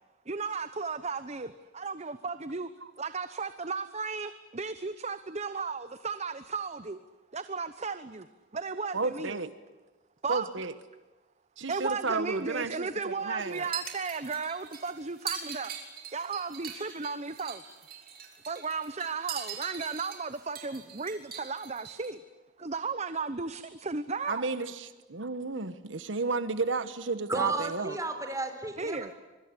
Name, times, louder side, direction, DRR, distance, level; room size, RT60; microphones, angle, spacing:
voice 1, 0.3-2.7 3.0-7.0 7.3-8.3 8.5-9.4 10.2-10.5 11.7-15.8 16.1-17.6 18.5-22.2 22.6-24.5 28.8-29.1, right 4 dB, 35° right, 12 dB, 0.9 m, -35 dB
voice 2, 8.9-9.5 10.3-10.7 11.6-13.7 24.3-28.0, right 4 dB, 70° right, 12 dB, 1.3 m, -32 dB
sound 1, 13.5-22.1, right 7 dB, 50° right, 5.3 m, -42 dB
voice 3, 27.3-29.1, right 2 dB, 15° right, 7 dB, 4.1 m, -33 dB
25.0 x 24.0 x 9.8 m, 1.2 s
head